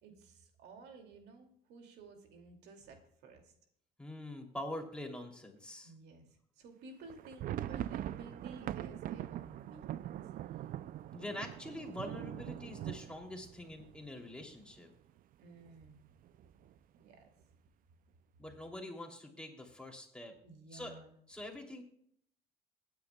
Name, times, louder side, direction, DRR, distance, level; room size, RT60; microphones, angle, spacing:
voice 1, 0.0-3.5 5.8-10.1 15.4-16.0 17.0-17.3 20.4-21.1, right 3 dB, 80° right, 3 dB, 2.5 m, -54 dB
voice 2, 4.0-5.9 11.1-14.9 18.4-20.3 20.7-21.0 21.3-21.8, left 1 dB, 5° left, 1 dB, 3.0 m, -45 dB
sound 1, 7.0-14.8 15.1-15.2 15.5-15.7 16.2-16.7, right 12 dB, 55° right, 0.4 m, -42 dB
22.0 x 9.6 x 2.3 m, 0.66 s
cardioid pair, 110°, 17 cm